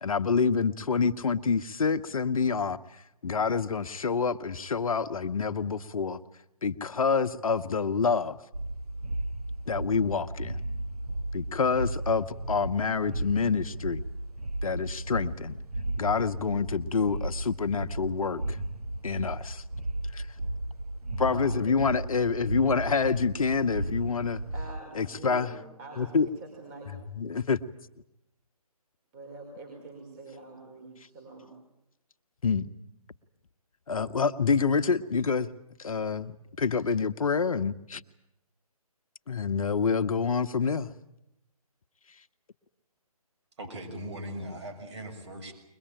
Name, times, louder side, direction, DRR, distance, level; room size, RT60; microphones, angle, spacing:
voice 1, 0.0-6.2 6.6-8.4 9.7-10.6 11.3-14.0 14.6-15.6 16.0-18.6 19.0-19.6 20.1-20.3 21.2-24.4 24.9-25.5 26.0-26.3 26.9-27.6 32.4-32.7 33.9-35.5 35.8-38.0 39.3-40.9, left 5 dB, 65° left, 10 dB, 1.1 m, -27 dB
sound 1, 8.5-24.8, right 1 dB, 75° right, 1.4 m, -34 dB
voice 2, 21.2-21.9 24.5-26.9 29.1-31.5, right 2 dB, 20° right, 2 dB, 5.2 m, -45 dB
voice 3, 43.6-45.5, right 1 dB, 45° right, 5 dB, 6.6 m, -39 dB
22.5 x 21.0 x 9.0 m, 0.84 s
hypercardioid pair, 160°, 20 cm